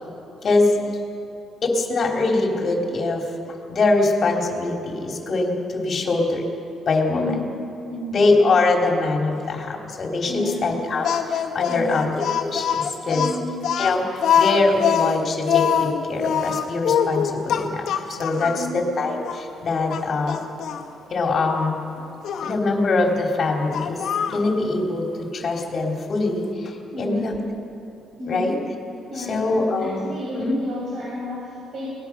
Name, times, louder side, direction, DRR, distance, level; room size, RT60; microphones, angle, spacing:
voice 1, 0.4-0.9 1.6-6.5 6.9-7.3 8.1-13.3 13.8-20.4 21.1-21.8 22.4-24.0 24.3-27.4 28.3-28.6 29.2-30.5, left 3 dB, 45° left, 1 dB, 3.6 m, -23 dB
voice 2, 7.1-7.4 7.9-8.2 9.4-9.5 10.2-10.7 11.7-12.1 13.1-13.5 18.4-18.8 26.9-27.3 28.2-28.5 29.1-29.3 29.8-31.9, left 1 dB, 50° right, -6 dB, 6.4 m, -31 dB
Speech, 11.0-18.6 19.2-19.4 19.9-20.8 22.2-22.6 23.7-24.5, left 8 dB, 65° left, 1.7 m, -23 dB
23.0 x 19.5 x 6.0 m, 3.0 s
cardioid pair, 110°, 0 cm